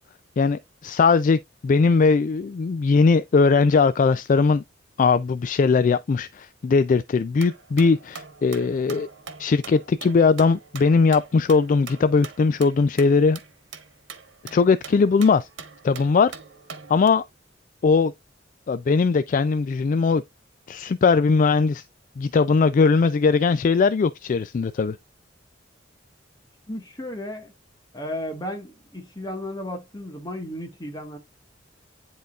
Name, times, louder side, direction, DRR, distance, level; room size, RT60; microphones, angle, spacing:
voice 1, 0.4-4.6 5.0-9.1 9.4-13.4 14.5-15.5 15.8-16.3 16.9-17.2 17.8-18.1 18.7-20.2 20.7-21.8 22.2-25.0, left 4 dB, 45° left, 0.3 m, -20 dB
sound 1, 7.4-17.1, right 5 dB, 85° right, 1.3 m, -43 dB
voice 2, 26.7-27.5 27.9-31.2, left 1 dB, 20° left, 1.7 m, -34 dB
10.5 x 3.9 x 2.4 m
head